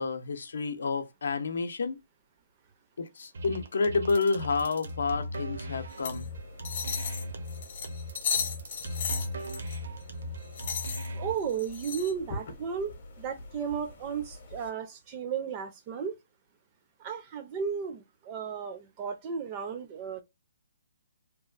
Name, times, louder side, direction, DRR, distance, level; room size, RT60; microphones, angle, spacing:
voice 1, 0.0-2.0 3.0-6.3, left 4 dB, 70° left, 0.6 m, -29 dB
sound 1, 3.3-11.4, equal, 60° right, 0.6 m, -38 dB
sound 2, 5.9-14.7, left 6 dB, 40° left, 0.8 m, -37 dB
voice 2, 11.1-16.2 17.0-20.2, right 7 dB, 20° right, 0.5 m, -34 dB
2.9 x 2.3 x 2.4 m
hypercardioid pair, 175°, 0 cm